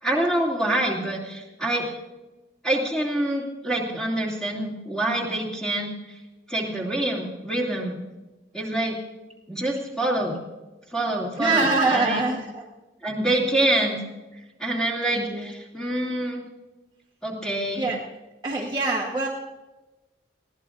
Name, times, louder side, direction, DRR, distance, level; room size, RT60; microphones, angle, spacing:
voice 1, 0.0-1.9 2.6-6.2 6.5-8.0 8.5-9.0 9.5-10.4 10.9-12.3 13.0-14.0 14.6-16.4 17.2-17.9, right 1 dB, 5° left, -3 dB, 2.6 m, -26 dB
voice 2, 11.4-12.6 15.1-15.5 17.8-18.0 18.4-19.3, right 3 dB, 25° right, -2 dB, 1.2 m, -24 dB
21.0 x 16.0 x 2.6 m, 1.1 s
head